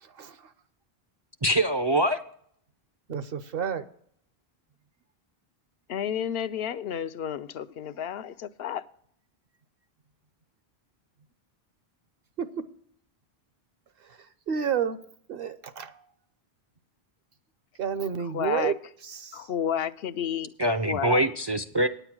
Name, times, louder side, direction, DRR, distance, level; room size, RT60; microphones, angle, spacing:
voice 1, 0.0-0.5 3.1-3.8 12.4-12.6 14.1-14.2 14.5-15.0 15.3-16.0 17.8-18.8 19.0-19.5, right 8 dB, 65° right, 0.9 m, -30 dB
voice 2, 1.4-2.2 20.6-21.9, right 1 dB, 35° right, 0.4 m, -24 dB
voice 3, 5.9-8.8 18.2-18.7 19.3-21.3, left 9 dB, 75° left, 0.8 m, -31 dB
9.5 x 8.0 x 6.0 m
omnidirectional pair, 1.0 m